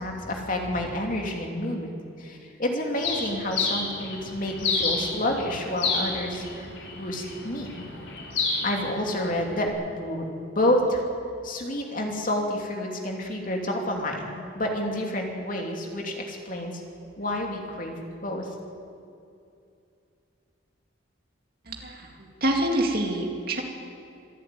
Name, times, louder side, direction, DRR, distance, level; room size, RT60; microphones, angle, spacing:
voice 1, 0.0-1.9 2.2-6.7 6.9-7.9 8.6-10.3 10.5-11.0 11.4-16.8 17.2-18.5, left 1 dB, 45° left, 1 dB, 2.9 m, -29 dB
Bird, 3.0-9.7, left 4 dB, 70° left, 4.6 m, -31 dB
voice 2, 21.7-23.6, right 1 dB, 50° right, 1 dB, 2.6 m, -27 dB
26.0 x 11.0 x 9.3 m, 2.6 s
head